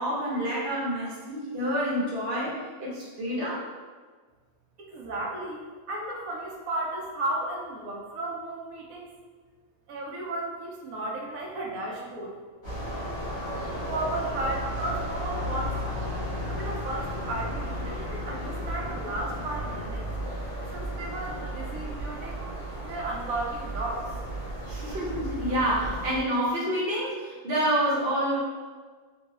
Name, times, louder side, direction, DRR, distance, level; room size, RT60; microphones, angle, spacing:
voice 1, 0.0-3.6 24.7-28.4, equal, 50° right, -5 dB, 0.9 m, -28 dB
voice 2, 4.8-9.1 9.9-12.3 13.8-16.2 16.5-20.1 20.7-22.5 22.8-24.1, right 2 dB, 85° right, -1 dB, 1.1 m, -34 dB
sound 1, 12.6-26.2, equal, 40° left, 1.0 m, -34 dB
3.7 x 2.3 x 2.9 m, 1.5 s
omnidirectional pair, 1.4 m